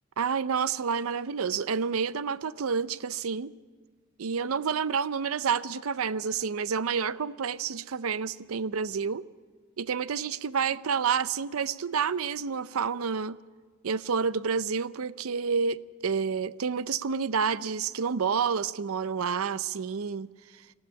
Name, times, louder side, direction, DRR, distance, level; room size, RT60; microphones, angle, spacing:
voice 1, 0.2-3.5 4.2-9.3 9.8-13.4 13.8-20.3, right 6 dB, 85° right, 0.6 m, -29 dB
19.5 x 14.5 x 10.0 m
head